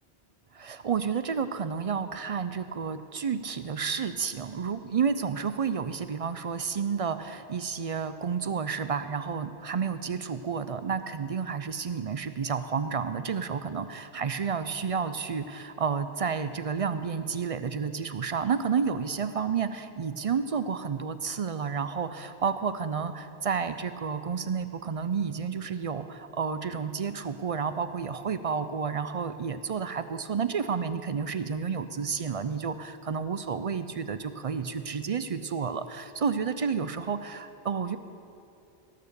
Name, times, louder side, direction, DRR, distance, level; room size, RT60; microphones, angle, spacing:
voice 1, 0.5-38.0, right 6 dB, 50° right, 11 dB, 0.4 m, -31 dB
17.0 x 6.7 x 6.8 m, 2.6 s
omnidirectional pair, 1.0 m